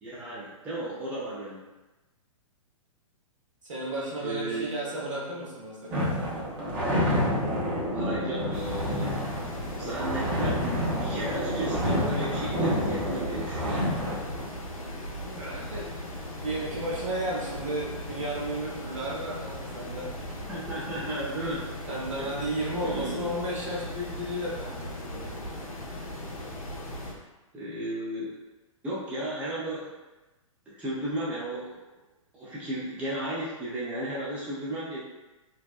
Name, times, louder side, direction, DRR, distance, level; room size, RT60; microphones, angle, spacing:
voice 1, 0.0-1.7 4.2-4.7 7.9-9.3 9.7-13.9 20.5-21.6 22.2-22.3 22.8-23.3 27.5-28.3 28.8-29.9 30.7-31.7 32.3-35.0, right 1 dB, 5° right, -8 dB, 0.5 m, -34 dB
voice 2, 3.6-6.7 15.2-15.9 16.4-20.1 21.9-25.3, right 1 dB, 65° right, -6 dB, 1.0 m, -34 dB
sound 1, 5.9-14.4, equal, 40° right, 0.8 m, -28 dB
sound 2, 8.5-27.1, left 1 dB, 80° left, 0.6 m, -38 dB
2.7 x 2.1 x 2.3 m, 1.1 s
figure-of-eight pair, 115°, 18 cm